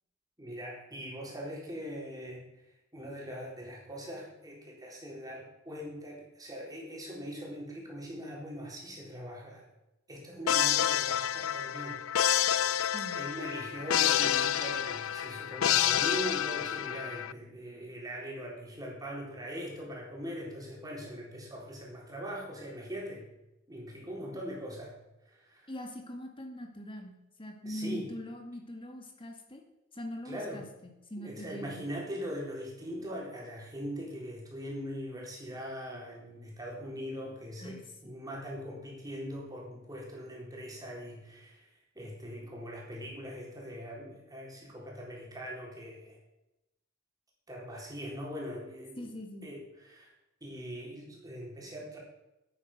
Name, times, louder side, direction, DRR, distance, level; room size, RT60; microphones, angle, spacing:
voice 1, 0.4-2.5 2.9-9.7 10.1-12.8 13.1-23.3 23.7-25.0 25.3-25.7 27.6-28.1 30.3-30.6 31.2-46.2 47.5-49.0 49.4-50.1 50.4-52.0, equal, 20° right, -3 dB, 4.0 m, -41 dB
sound 1, 10.5-17.3, left 10 dB, 90° left, 0.5 m, -29 dB
voice 2, 25.7-29.6 29.9-31.8 37.6-37.8 49.0-49.5, left 1 dB, 25° left, 2 dB, 2.3 m, -42 dB
11.5 x 9.0 x 6.1 m, 0.93 s
head